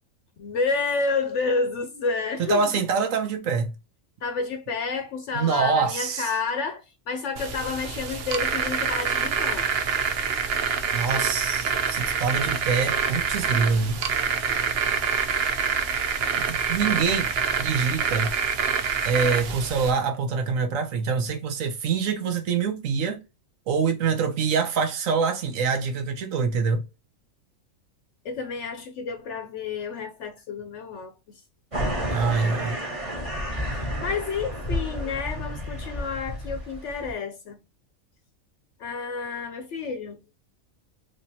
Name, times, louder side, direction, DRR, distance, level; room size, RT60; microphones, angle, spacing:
voice 1, 0.4-2.8 4.2-9.7 16.9-17.0 28.2-31.4 33.7-37.6 38.8-40.2, left 4 dB, 65° left, 0.8 m, -30 dB
voice 2, 2.5-3.7 5.3-6.3 10.9-14.0 16.3-17.3 17.6-18.3 19.0-23.2 23.7-26.8 32.0-32.8, right 5 dB, 75° right, 1.2 m, -25 dB
sound 1, 7.4-19.9, right 6 dB, 60° right, 0.8 m, -26 dB
sound 2, 31.7-37.1, equal, 25° right, 1.3 m, -31 dB
3.5 x 3.2 x 2.7 m
omnidirectional pair, 1.4 m